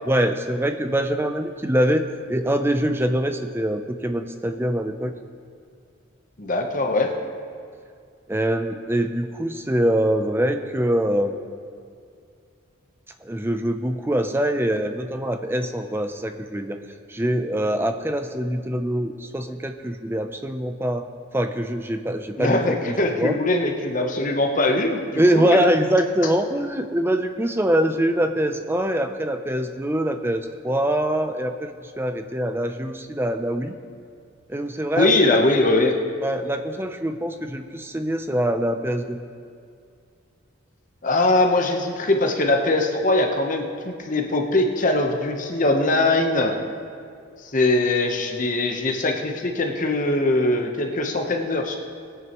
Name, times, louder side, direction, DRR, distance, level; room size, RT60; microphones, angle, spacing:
voice 1, 0.0-2.0 2.3-5.1 8.3-11.3 13.2-16.8 17.1-21.0 21.3-23.4 25.2-31.7 32.0-33.7 34.5-35.4 36.2-39.2, right 1 dB, 10° right, 7 dB, 0.5 m, -24 dB
voice 2, 6.4-7.1 22.4-25.6 34.9-36.0 41.0-46.5 47.4-51.8, left 2 dB, 40° left, 3 dB, 0.9 m, -21 dB
20.5 x 9.2 x 3.0 m, 2.2 s
head